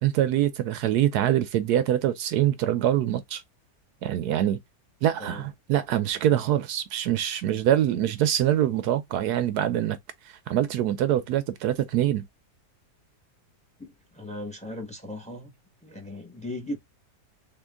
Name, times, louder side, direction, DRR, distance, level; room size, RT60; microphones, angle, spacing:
voice 1, 0.0-3.4 4.0-4.6 5.0-10.0 10.5-12.2, right 11 dB, 75° right, 1.1 m, -24 dB
voice 2, 13.8-15.5 15.8-16.8, left 1 dB, 5° left, 1.0 m, -37 dB
3.7 x 2.8 x 3.5 m
omnidirectional pair, 1.8 m